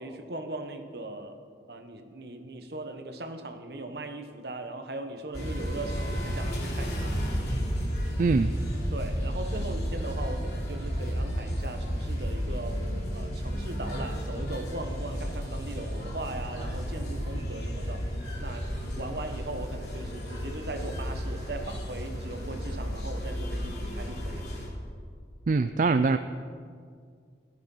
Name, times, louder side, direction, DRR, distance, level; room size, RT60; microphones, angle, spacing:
voice 1, 0.0-1.4 1.7-7.2 8.9-18.1 18.4-24.5, right 2 dB, 60° right, 6 dB, 1.3 m, -39 dB
sound 1, 5.3-24.7, equal, 60° left, 3.5 m, -32 dB
voice 2, 8.2-8.5 25.5-26.2, right 4 dB, 45° right, 10 dB, 0.4 m, -23 dB
16.0 x 12.0 x 5.6 m, 2.1 s
head